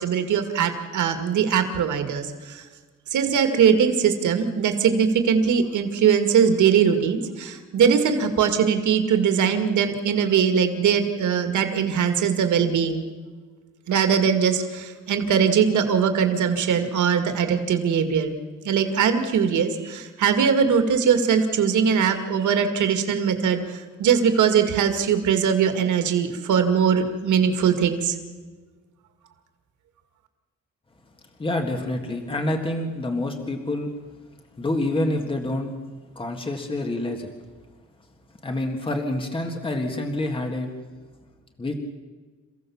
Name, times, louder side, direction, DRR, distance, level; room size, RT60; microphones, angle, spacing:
voice 1, 0.0-2.6 3.1-13.1 13.9-18.4 18.6-28.1, right 7 dB, 90° right, 7 dB, 2.3 m, -21 dB
voice 2, 31.4-33.9 34.6-35.7 36.2-37.3 38.4-40.7 41.6-41.8, left 1 dB, 20° left, 4 dB, 1.8 m, -27 dB
28.5 x 16.0 x 7.2 m, 1.4 s
wide cardioid pair, 170°, 29 cm